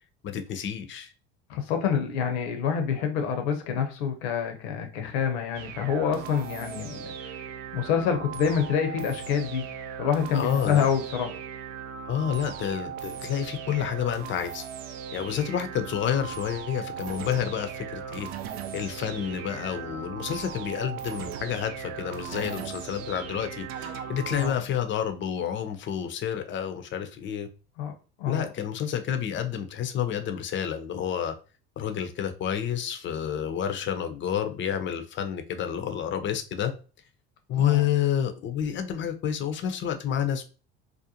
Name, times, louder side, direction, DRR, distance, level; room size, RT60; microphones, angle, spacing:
voice 1, 0.2-1.1 10.3-10.9 12.1-14.6 15.1-18.3 18.7-27.5 28.3-31.3 31.8-36.7 37.5-40.5, left 9 dB, 35° left, 0.5 m, -29 dB
voice 2, 1.5-7.5 7.7-9.6 10.0-11.4 24.4-24.6 27.8-28.5 37.6-37.8, left 7 dB, 75° left, 0.7 m, -27 dB
sound 1, 5.5-24.5, right 8 dB, 65° right, 0.5 m, -38 dB
2.5 x 2.1 x 2.7 m
hypercardioid pair, 70°, 33 cm